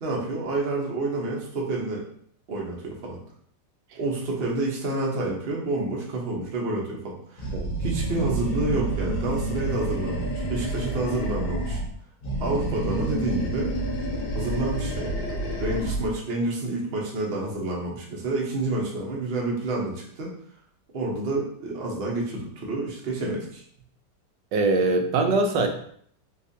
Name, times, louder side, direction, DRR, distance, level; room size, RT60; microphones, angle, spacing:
voice 1, 0.0-2.0 2.5-3.2 4.0-7.5 7.8-11.8 12.4-13.7 14.3-15.2 15.6-20.3 20.9-23.6, right 2 dB, 45° right, -2 dB, 0.8 m, -29 dB
Animal, 7.4-11.9 12.2-16.1, right 1 dB, 65° left, 1.4 m, -29 dB
voice 2, 24.5-25.7, right 3 dB, 85° right, 4 dB, 1.3 m, -22 dB
4.0 x 2.5 x 2.6 m, 0.62 s
omnidirectional pair, 1.9 m